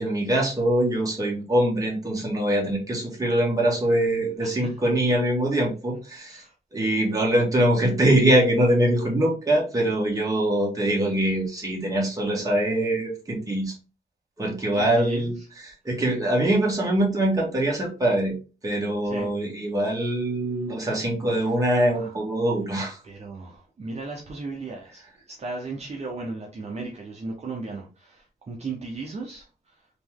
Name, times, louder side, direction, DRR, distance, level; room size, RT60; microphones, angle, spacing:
voice 1, 0.0-6.4 6.7-13.7 14.4-15.4 15.6-18.3 18.6-23.0, right 1 dB, 20° right, 1.7 m, -23 dB
voice 2, 4.4-4.7 6.3-6.5 14.7-15.5 19.0-19.3 21.2-21.5 21.9-22.2 23.0-29.7, right 3 dB, 40° right, 0.9 m, -36 dB
4.0 x 3.1 x 3.6 m
wide cardioid pair, 145°, 16 cm